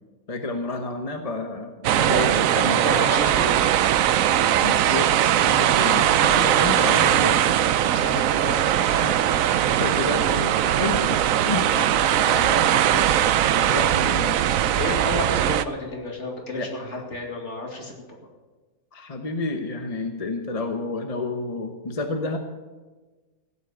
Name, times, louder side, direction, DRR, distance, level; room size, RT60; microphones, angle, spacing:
voice 1, 0.3-2.9 4.6-5.1 5.4-7.4 9.0-14.4 16.5-17.0 18.9-22.4, left 3 dB, 25° left, 5 dB, 0.9 m, -30 dB
sound 1, 1.8-15.6, right 11 dB, 65° right, 0.9 m, -20 dB
voice 2, 2.6-3.6 7.8-9.0 13.7-14.0 14.4-17.9, left 2 dB, 45° left, 1 dB, 2.7 m, -32 dB
16.0 x 8.1 x 8.2 m, 1.3 s
omnidirectional pair, 1.7 m